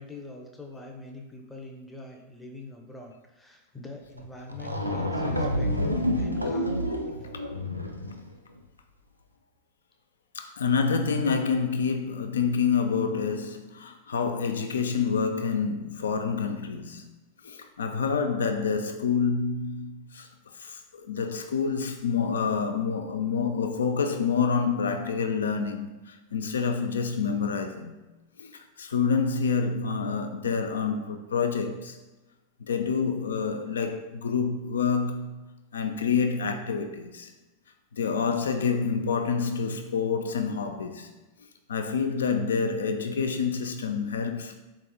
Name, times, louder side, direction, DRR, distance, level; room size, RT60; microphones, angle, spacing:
voice 1, 0.0-6.8 7.2-7.3, left 3 dB, 5° left, 0.6 m, -44 dB
sound 1, 4.2-4.3 4.5-8.3, equal, 90° right, 0.3 m, -28 dB
voice 2, 10.3-17.1 17.4-20.3 20.5-28.0 28.4-32.0 32.6-35.4 35.7-37.3 37.9-41.1 41.7-44.5, left 5 dB, 65° left, 0.4 m, -27 dB
4.0 x 3.6 x 2.2 m
figure-of-eight pair, 90°, 0 cm